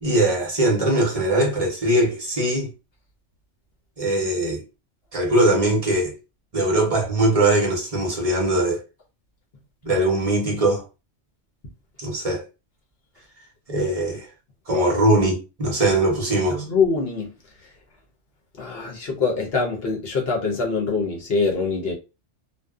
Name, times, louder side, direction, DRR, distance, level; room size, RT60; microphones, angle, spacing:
voice 1, 0.0-2.7 4.0-4.6 5.1-6.1 6.5-8.8 9.8-10.8 12.0-12.4 13.7-14.3 14.7-16.6, right 1 dB, 35° right, 0.8 m, -21 dB
voice 2, 16.5-17.3 18.6-21.9, left 4 dB, 60° left, 1.0 m, -24 dB
2.6 x 2.3 x 2.3 m
omnidirectional pair, 1.2 m